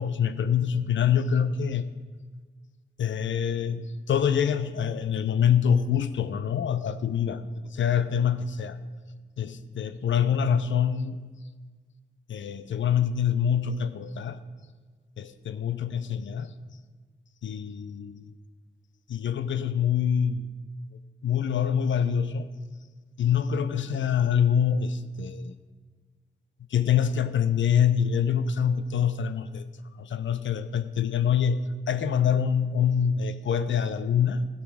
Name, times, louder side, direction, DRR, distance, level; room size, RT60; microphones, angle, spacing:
voice 1, 0.0-1.9 3.0-8.8 9.4-11.2 12.3-14.4 15.2-16.5 17.4-18.3 19.1-20.5 21.2-22.5 23.2-25.5 26.7-29.6 30.0-34.5, left 8 dB, 90° left, 13 dB, 0.6 m, -25 dB
13.5 x 8.4 x 6.3 m, 1.5 s
cardioid pair, 50°, 19 cm